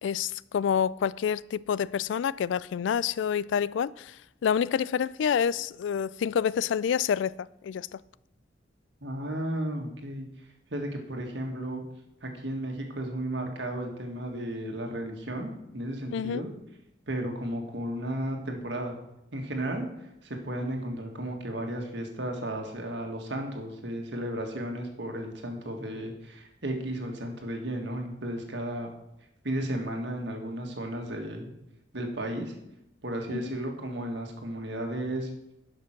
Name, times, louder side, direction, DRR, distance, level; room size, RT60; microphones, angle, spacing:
voice 1, 0.0-4.2 4.4-7.3 7.6-8.0 16.1-16.5 33.3-33.5, left 7 dB, 75° left, 0.3 m, -28 dB
voice 2, 9.0-10.3 10.7-11.8 12.2-16.5 17.1-19.0 19.3-28.9 29.4-31.5 31.9-32.5 33.0-35.3, right 1 dB, 65° right, 1.8 m, -34 dB
11.0 x 6.0 x 5.9 m
head